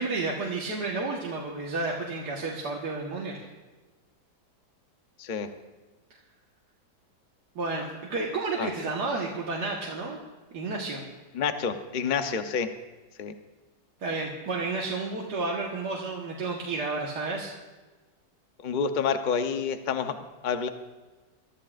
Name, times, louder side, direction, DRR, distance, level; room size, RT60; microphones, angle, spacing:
voice 1, 0.0-3.4 7.6-10.2 10.5-11.0 14.0-17.5, right 3 dB, 70° right, -3 dB, 2.0 m, -31 dB
voice 2, 11.3-12.7 13.2-13.3 18.6-20.1 20.4-20.7, left 6 dB, 45° left, 7 dB, 0.6 m, -28 dB
23.5 x 13.0 x 2.5 m, 1.2 s
omnidirectional pair, 1.9 m